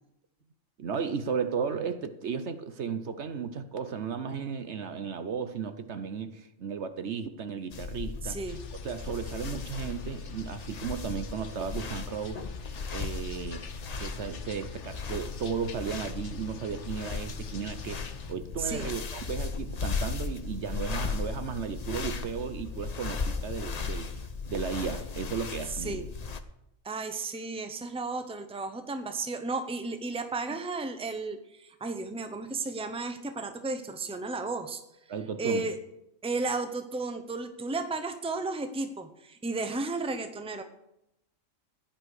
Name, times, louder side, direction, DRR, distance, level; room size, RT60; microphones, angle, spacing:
voice 1, 0.8-8.4 8.8-12.5 12.9-13.6 14.0-24.1 24.5-26.1 35.1-35.7, right 6 dB, 60° right, 10 dB, 1.1 m, -35 dB
sound 1, 7.7-26.4, left 4 dB, 35° left, 0.7 m, -36 dB
voice 2, 8.2-8.6 18.6-18.9 25.7-26.1 26.8-34.8 35.4-35.8 36.2-40.6, right 3 dB, 5° right, 8 dB, 0.8 m, -33 dB
sound 2, 8.5-18.3, left 6 dB, 65° left, 1.3 m, -48 dB
15.5 x 10.5 x 4.9 m, 0.84 s
omnidirectional pair, 1.4 m